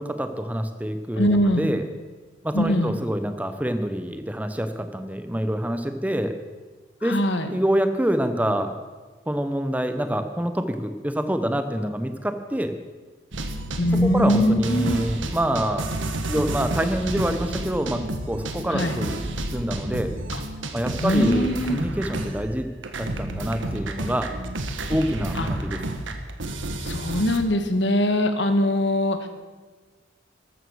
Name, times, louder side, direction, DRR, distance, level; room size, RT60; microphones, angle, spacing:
voice 1, 0.0-1.9 2.4-6.3 7.0-7.2 7.5-8.7 9.3-12.8 13.8-15.9 16.3-19.2 19.5-20.1 20.7-22.7 23.0-24.3 24.9-26.0, equal, 10° right, 8 dB, 0.8 m, -26 dB
voice 2, 1.2-1.7 2.5-2.9 7.0-7.5 13.8-15.0 18.7-19.0 20.3-20.4 21.0-21.8 25.3-25.5 26.8-29.3, left 1 dB, 65° left, 7 dB, 1.5 m, -22 dB
sound 1, 13.3-22.6 22.8-27.4, right 1 dB, 85° right, 1.6 m, -31 dB
14.0 x 12.5 x 6.3 m, 1.3 s
head